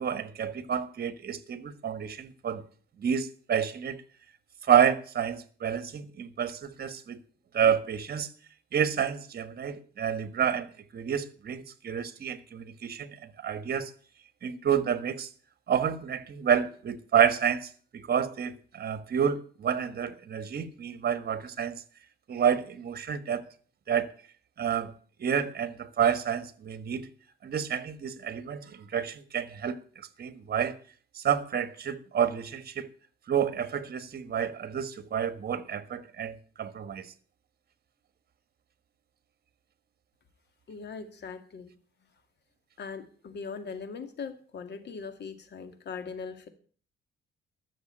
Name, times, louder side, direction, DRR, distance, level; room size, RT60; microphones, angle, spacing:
voice 1, 0.0-2.6 3.0-4.0 4.7-7.2 7.5-8.3 8.7-13.9 14.4-15.3 15.7-21.8 22.3-23.5 23.9-24.1 24.6-24.9 25.2-27.1 27.4-30.8 31.1-32.9 33.3-37.1, right 8 dB, 50° right, 1.6 m, -29 dB
voice 2, 40.7-41.7 42.8-46.5, left 5 dB, 60° left, 2.4 m, -40 dB
13.0 x 7.0 x 9.1 m
cardioid pair, 90°, 20 cm